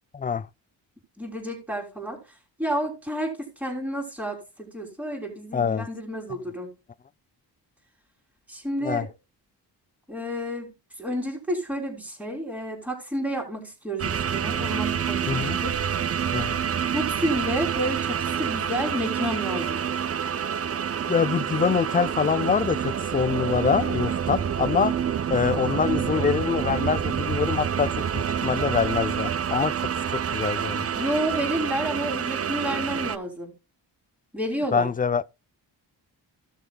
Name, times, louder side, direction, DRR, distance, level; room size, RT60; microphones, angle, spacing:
voice 1, 0.1-0.5 5.5-5.9 8.8-9.1 15.3-15.6 16.3-16.7 21.1-24.9 25.3-29.8 30.1-30.9 34.7-35.2, left 6 dB, 20° left, 0.4 m, -25 dB
voice 2, 1.2-2.2 2.6-6.7 8.5-9.1 10.1-10.7 11.0-15.7 16.9-19.8 30.9-33.5 34.3-34.9, equal, 5° right, 3.4 m, -30 dB
sound 1, 14.0-33.2, right 8 dB, 35° right, 0.5 m, -27 dB
15.5 x 6.4 x 2.3 m
cardioid pair, 115°, 41 cm